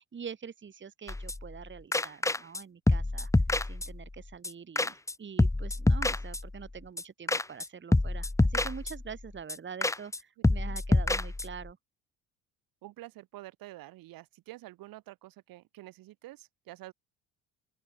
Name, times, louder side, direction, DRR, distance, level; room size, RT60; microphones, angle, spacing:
voice 1, 0.0-3.3 3.7-11.8, right 6 dB, 30° right, 1.9 m, -45 dB
sound 1, 1.1-1.6 1.9-2.6 2.9-4.2 4.4-4.5 4.8-5.1 5.4-6.7 7.0-7.1 7.3-7.7 7.9-9.2 9.5-9.6 9.8-10.2 10.4-11.7, left 2 dB, 10° left, 1.0 m, -27 dB
voice 2, 10.4-10.7 12.8-16.9, right 17 dB, 70° right, 2.9 m, -48 dB
open air
supercardioid pair, 70°, 36 cm